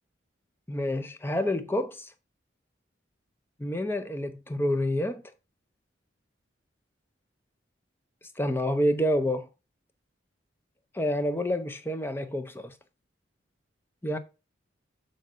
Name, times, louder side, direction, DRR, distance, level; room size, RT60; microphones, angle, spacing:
voice 1, 0.7-2.1 3.6-5.2 8.4-9.5 10.9-12.7 14.0-14.2, left 1 dB, 10° left, 0.6 m, -28 dB
6.6 x 5.8 x 3.7 m
head